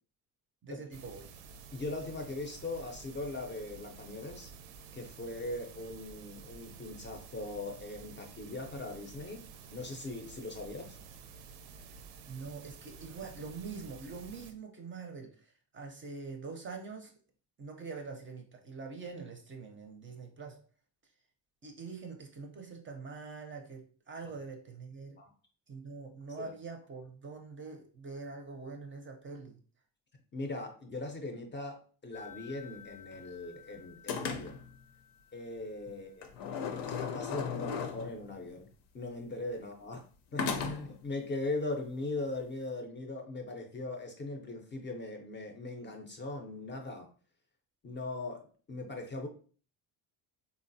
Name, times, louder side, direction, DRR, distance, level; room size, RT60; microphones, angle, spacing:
voice 1, 0.6-1.3 11.9-12.0 12.3-17.1 17.6-20.6 21.6-25.2 25.7-29.6, right 4 dB, 30° right, 3 dB, 0.5 m, -44 dB
sound 1, 0.9-14.5, right 5 dB, 80° right, 0.5 m, -51 dB
voice 2, 1.7-4.5 4.9-9.4 9.7-11.0 24.2-24.3 25.2-25.3 26.4-26.5 30.3-34.6 35.3-36.3 36.9-38.7 38.9-40.1 40.3-47.1 47.8-48.4 48.7-49.3, left 2 dB, 25° left, 3 dB, 0.5 m, -40 dB
sound 2, 32.1-33.6 34.1-34.7 36.2-38.3 40.4-41.0, left 6 dB, 70° left, 0.6 m, -37 dB
3.8 x 2.0 x 2.6 m, 0.42 s
cardioid pair, 110°, 43 cm